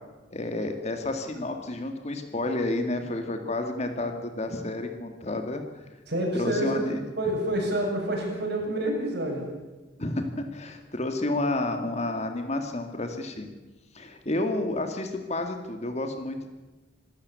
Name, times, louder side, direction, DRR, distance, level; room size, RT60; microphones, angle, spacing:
voice 1, 0.3-5.6 6.4-7.0 10.0-13.5 13.9-16.5, left 2 dB, 35° left, 6 dB, 2.2 m, -30 dB
voice 2, 6.1-6.8 7.2-9.5, right 1 dB, 55° right, 0 dB, 7.7 m, -28 dB
26.5 x 13.0 x 8.4 m, 1.2 s
head